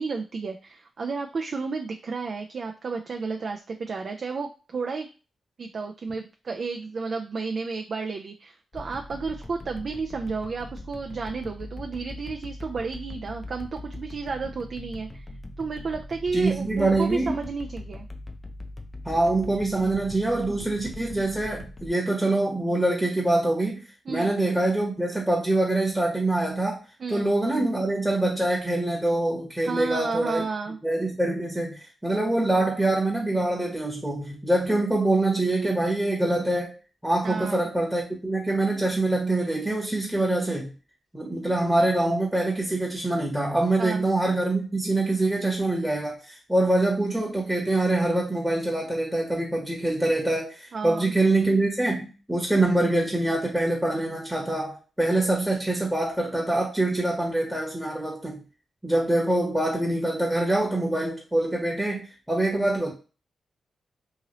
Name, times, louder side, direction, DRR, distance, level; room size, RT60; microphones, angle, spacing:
voice 1, 0.0-5.1 5.6-15.3 15.6-18.1 24.1-24.3 27.0-27.3 29.7-30.8 37.2-37.7 43.8-44.0 50.7-51.1, right 4 dB, 60° right, 2 dB, 0.3 m, -32 dB
sound 1, 8.7-21.9, left 1 dB, 25° left, 0.5 m, -41 dB
voice 2, 16.3-17.4 19.0-23.8 24.1-26.8 27.1-30.4 30.8-36.7 37.0-40.7 41.1-58.4 58.8-62.9, right 2 dB, 5° right, -2 dB, 0.9 m, -25 dB
2.8 x 2.7 x 2.9 m, 0.34 s
cardioid pair, 75°, 0 cm